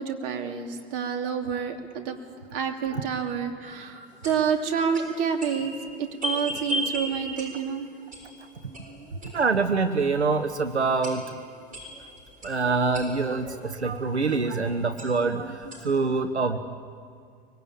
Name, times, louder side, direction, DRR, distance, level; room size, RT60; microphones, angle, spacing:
voice 1, 0.0-2.2 2.5-5.7 6.0-7.9, right 7 dB, 55° right, 4 dB, 3.0 m, -28 dB
sound 1, 3.6-9.8 10.3-10.4 10.8-13.8 14.6-14.7 15.0-16.0, equal, 25° right, 6.8 m, -37 dB
voice 2, 9.2-11.2 12.4-16.6, right 4 dB, 90° right, 9 dB, 1.0 m, -25 dB
24.5 x 21.0 x 8.9 m, 2.2 s
figure-of-eight pair, 80°, 33 cm